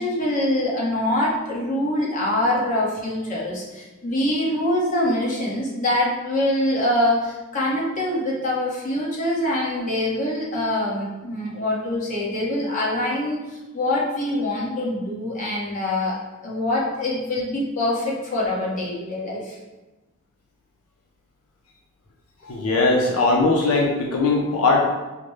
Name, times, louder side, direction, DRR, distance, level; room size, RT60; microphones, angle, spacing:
voice 1, 0.0-19.6, left 1 dB, 35° left, -5 dB, 1.0 m, -24 dB
voice 2, 22.4-24.9, left 3 dB, 80° left, 0 dB, 0.5 m, -20 dB
4.9 x 2.1 x 3.1 m, 1.1 s
head